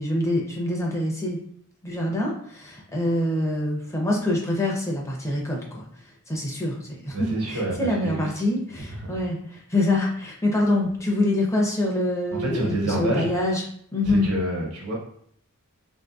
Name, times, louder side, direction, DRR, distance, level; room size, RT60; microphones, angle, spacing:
voice 1, 0.0-1.4 1.8-5.8 6.3-13.6 13.9-14.3, left 1 dB, 15° left, -2 dB, 0.4 m, -25 dB
voice 2, 7.1-8.3 9.1-9.2 12.3-13.5 14.0-14.9, right 1 dB, 85° right, -2 dB, 1.0 m, -28 dB
3.4 x 2.6 x 2.2 m, 0.65 s
head